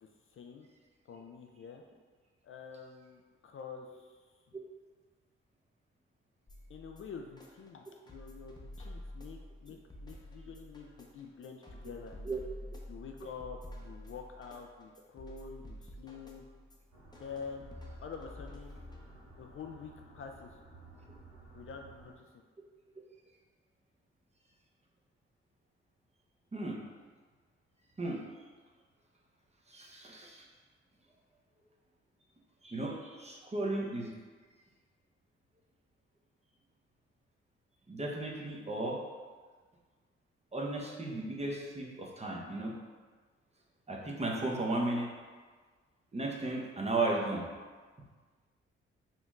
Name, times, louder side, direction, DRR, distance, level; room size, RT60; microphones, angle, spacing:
voice 1, 0.0-0.7 1.1-1.8 2.4-4.2 6.7-12.4 12.9-16.4 17.2-17.7 18.0-18.8 19.4-20.5 21.5-22.4, left 5 dB, 45° left, 3 dB, 0.4 m, -47 dB
sound 1, 6.5-19.5, left 1 dB, 15° left, 0.7 m, -49 dB
sound 2, 16.9-22.2, right 2 dB, 90° right, 0.8 m, -56 dB
voice 2, 29.7-30.5 32.6-34.1 37.9-39.0 40.5-42.8 43.9-45.1 46.1-47.4, right 2 dB, 20° right, -1 dB, 0.8 m, -35 dB
4.3 x 2.8 x 2.4 m, 1.5 s
hypercardioid pair, 40°, 30 cm